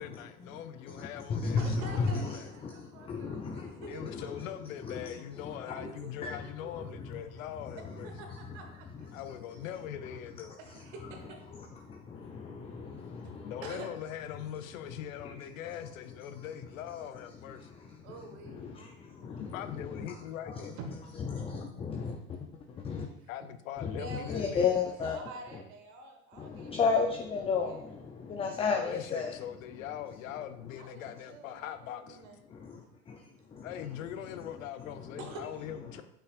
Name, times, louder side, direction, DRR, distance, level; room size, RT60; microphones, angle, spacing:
voice 1, 0.0-2.5 3.9-8.1 9.1-10.6 13.4-17.7 19.4-20.8 23.3-24.7 28.7-32.2 33.6-36.0, left 10 dB, 65° left, 0.7 m, -42 dB
voice 2, 0.9-2.4 2.6-4.4 4.8-5.1 5.4-5.9 6.2-6.4 6.7-7.2 7.7-7.8 9.1-9.2 11.5-13.6 15.2-15.5 16.4-16.5 17.6-18.1 18.4-20.1 20.5-20.6 21.3-23.1 23.8-25.2 25.5-25.6 26.4-29.4 32.5-33.7 35.0-35.1, left 5 dB, 15° left, 0.4 m, -34 dB
voice 3, 1.6-4.3 5.6-6.1 6.4-7.0 7.8-9.2 10.6-11.4 13.2-13.9 18.0-18.7 22.8-22.9 23.2-23.3 23.9-24.5 24.7-27.0 27.3-27.9 30.8-32.4 35.2-35.6, right 2 dB, 60° right, 1.6 m, -48 dB
8.6 x 5.5 x 2.5 m
hypercardioid pair, 90°, 43 cm